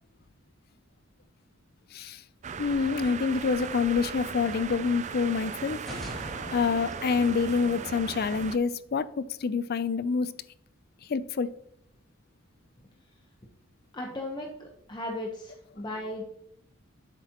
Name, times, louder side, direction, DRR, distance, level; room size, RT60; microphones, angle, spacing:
sound 1, 2.4-8.6, right 6 dB, 35° right, 0.4 m, -37 dB
voice 1, 2.6-5.8 6.5-10.3 11.1-11.5, left 5 dB, 45° left, 0.4 m, -27 dB
sound 2, 5.7-8.6, equal, ahead, 2.3 m, -43 dB
voice 2, 13.9-16.2, left 1 dB, 20° left, 0.9 m, -36 dB
11.0 x 8.1 x 2.9 m
head